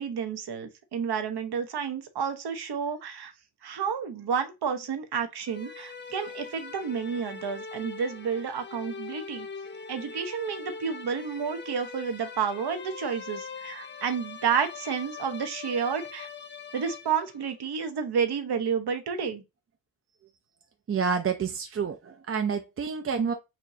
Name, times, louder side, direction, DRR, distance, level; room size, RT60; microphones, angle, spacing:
voice 1, 0.0-3.3 3.6-9.5 9.9-16.3 16.7-19.4, right 6 dB, 70° right, 0.9 m, -30 dB
sound 1, 5.5-17.5, left 5 dB, 30° left, 0.4 m, -42 dB
voice 2, 20.9-23.3, right 6 dB, 35° right, 0.4 m, -28 dB
4.3 x 3.0 x 2.7 m
wide cardioid pair, 135°, 41 cm